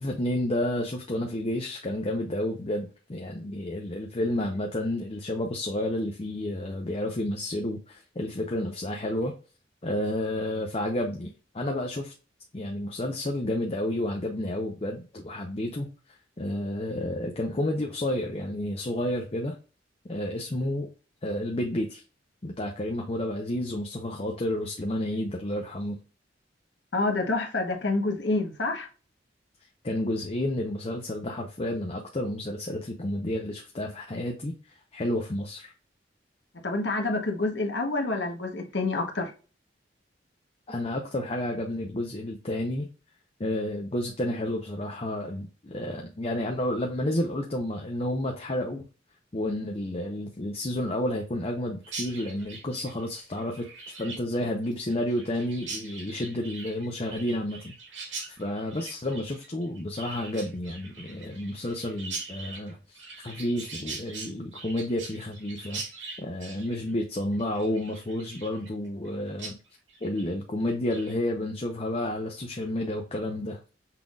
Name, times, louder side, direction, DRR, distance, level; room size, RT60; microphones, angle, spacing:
voice 1, 0.0-9.3 9.8-12.1 12.5-19.6 20.1-20.9 21.2-22.0 22.4-26.0 29.8-35.7 40.7-42.9 43.4-48.8 49.3-57.7 58.4-65.8 66.2-69.6 70.0-73.7, left 1 dB, 30° left, 0.7 m, -31 dB
voice 2, 26.9-28.9 36.6-39.3, left 2 dB, 65° left, 1.0 m, -27 dB
Chirp tweet, 51.8-69.1 69.4-69.5 69.9-70.3 70.6-71.1, right 3 dB, 85° right, 2.0 m, -42 dB
5.8 x 3.7 x 2.3 m
head